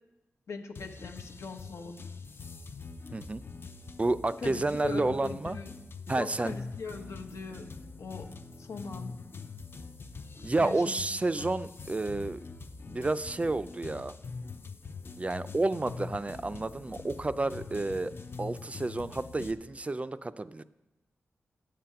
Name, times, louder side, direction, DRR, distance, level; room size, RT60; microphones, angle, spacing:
voice 1, 0.5-2.0 4.4-5.7 6.2-8.3 8.6-9.2 10.6-11.0 11.4-11.5, left 4 dB, 85° left, 5 dB, 0.9 m, -40 dB
sound 1, 0.8-19.5, left 4 dB, 50° left, 0.6 m, -44 dB
voice 2, 3.1-3.4 4.0-5.6 6.1-6.6 10.4-12.4 12.9-14.1 15.2-18.1 18.4-20.6, right 2 dB, 30° right, 14 dB, 0.3 m, -30 dB
7.6 x 7.3 x 5.7 m, 1.0 s
cardioid pair, 60°, 5 cm